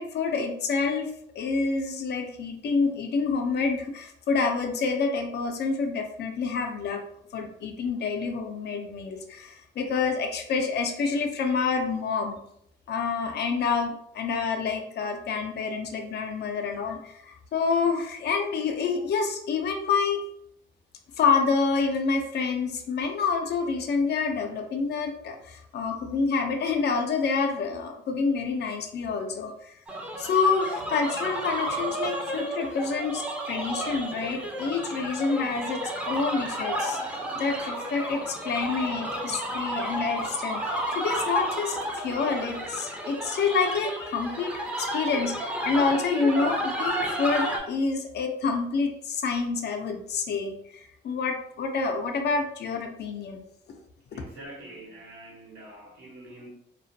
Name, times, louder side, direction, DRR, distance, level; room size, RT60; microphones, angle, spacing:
voice 1, 0.0-7.0 7.3-12.4 12.9-20.2 21.2-29.8 30.2-37.0 37.3-40.6 41.0-53.4, left 4 dB, 60° left, 4 dB, 0.5 m, -28 dB
Computer hysterics, 29.9-47.6, right 1 dB, 5° right, 0.5 m, -32 dB
voice 2, 54.1-56.5, right 1 dB, 80° right, -3 dB, 1.0 m, -45 dB
2.2 x 2.1 x 2.6 m, 0.70 s
cardioid pair, 90°, 20 cm